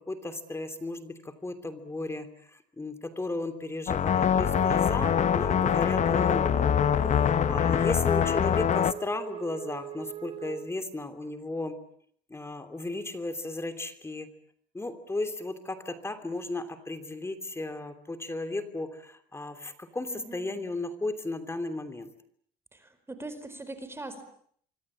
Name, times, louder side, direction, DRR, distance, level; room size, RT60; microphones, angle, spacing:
voice 1, 0.1-2.3 2.8-6.7 7.1-11.7 12.3-14.3 14.7-22.1, left 2 dB, 15° left, 9 dB, 3.0 m, -35 dB
sound 1, 3.9-8.9, left 9 dB, 45° left, 1.1 m, -24 dB
Wind instrument woodwind instrument, 4.3-10.7, right 9 dB, 35° right, 3.9 m, -40 dB
voice 2, 20.1-20.5 22.7-24.2, right 2 dB, 15° right, 10 dB, 4.7 m, -41 dB
26.0 x 25.5 x 8.6 m, 0.62 s
cardioid pair, 110°, 17 cm